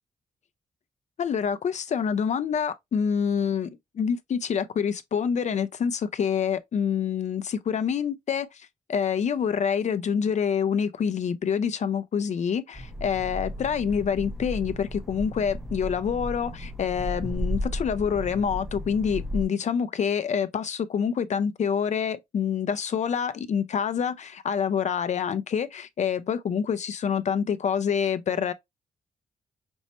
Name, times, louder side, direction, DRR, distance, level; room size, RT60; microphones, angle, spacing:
voice 1, 1.2-3.7 3.9-28.5, left 7 dB, 55° left, 0.4 m, -27 dB
sound 1, 12.7-19.4, equal, ahead, 0.5 m, -34 dB
5.2 x 2.1 x 2.9 m
cardioid pair, 75°, 14 cm